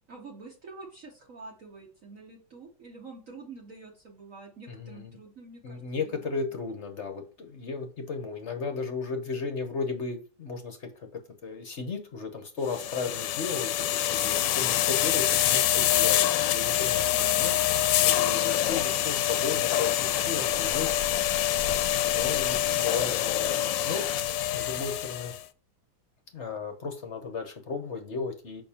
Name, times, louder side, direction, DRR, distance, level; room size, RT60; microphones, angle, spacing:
voice 1, 0.1-6.6 17.0-17.5, right 3 dB, 50° right, 0 dB, 1.3 m, -47 dB
voice 2, 4.7-5.1 5.6-11.1 11.4-17.6 18.0-20.9 21.7-21.8 22.1-23.6 23.8-24.1 24.5-25.3 26.3-28.6, left 4 dB, 50° left, 6 dB, 0.9 m, -35 dB
sound 1, 12.7-25.4, left 12 dB, 85° left, 1.3 m, -26 dB
6.9 x 5.5 x 2.9 m, 0.37 s
omnidirectional pair, 2.0 m